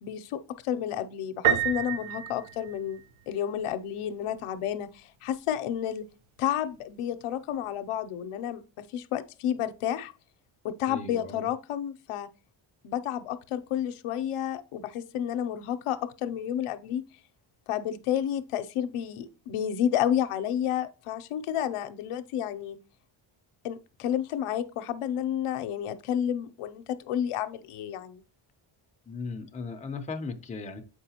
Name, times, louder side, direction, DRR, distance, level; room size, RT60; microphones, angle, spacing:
voice 1, 0.0-3.0 3.3-6.0 6.4-8.6 8.9-10.1 10.6-12.3 12.8-17.0 17.7-22.8 23.6-28.2, left 10 dB, 85° left, 0.6 m, -31 dB
Piano, 1.4-3.3, right 10 dB, 70° right, 0.8 m, -28 dB
voice 2, 10.9-11.5 29.1-30.8, left 4 dB, 15° left, 0.5 m, -37 dB
7.4 x 4.7 x 2.8 m
wide cardioid pair, 165°, 49 cm